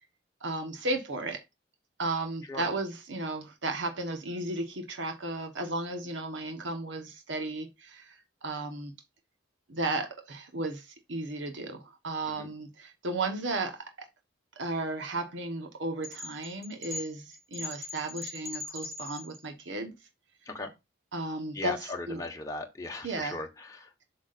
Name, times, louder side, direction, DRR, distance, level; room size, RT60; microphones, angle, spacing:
voice 1, 0.4-1.4 2.0-8.9 9.7-14.1 14.6-19.9 21.1-22.2 23.0-23.4, right 2 dB, 80° right, 1.3 m, -34 dB
sound 1, 16.0-19.6, left 3 dB, 35° right, 1.9 m, -40 dB
voice 2, 21.5-23.9, left 2 dB, 15° left, 1.4 m, -38 dB
7.6 x 6.1 x 2.6 m
head